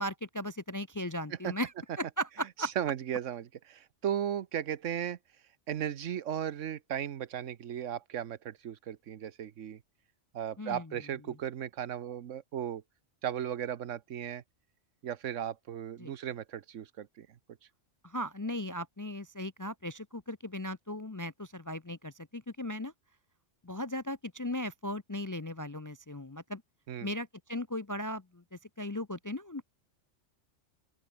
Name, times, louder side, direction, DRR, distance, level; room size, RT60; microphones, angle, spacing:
voice 1, 0.0-1.7 2.0-2.7 10.6-10.9 16.0-16.1 18.0-22.9 23.6-26.6 27.0-29.6, equal, 25° left, 0.5 m, -37 dB
voice 2, 2.6-5.2 5.7-9.8 10.3-12.8 13.2-14.4 15.0-17.3 26.9-27.1, right 9 dB, 80° right, 1.2 m, -36 dB
open air
omnidirectional pair, 1.3 m